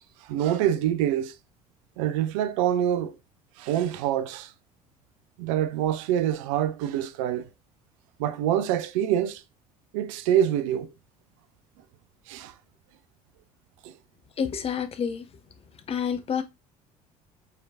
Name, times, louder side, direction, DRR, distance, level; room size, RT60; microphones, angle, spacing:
voice 1, 0.2-1.3 2.0-3.1 3.6-4.5 5.4-7.5 8.2-9.4 9.9-10.9 12.3-12.5 13.8-13.9, right 10 dB, 60° right, 0.5 m, -25 dB
voice 2, 14.4-15.2 15.9-16.4, left 7 dB, 30° left, 0.7 m, -28 dB
4.9 x 4.3 x 2.4 m
figure-of-eight pair, 60°, 19 cm